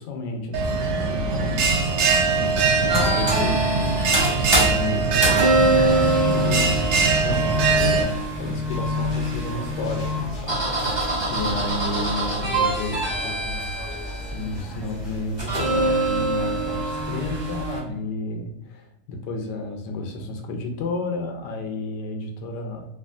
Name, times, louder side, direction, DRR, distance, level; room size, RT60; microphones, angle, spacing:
voice 1, 0.0-1.7 2.3-10.6 11.3-13.7 14.3-22.9, left 2 dB, 85° left, 4 dB, 1.2 m, -31 dB
Bell, 0.5-8.0, right 4 dB, 90° right, 1.2 m, -22 dB
sound 1, 2.9-17.8, right 1 dB, 25° right, 0.6 m, -25 dB
sound 2, 7.9-15.9, left 2 dB, 35° left, 0.6 m, -43 dB
3.3 x 2.3 x 2.4 m, 0.85 s
omnidirectional pair, 1.8 m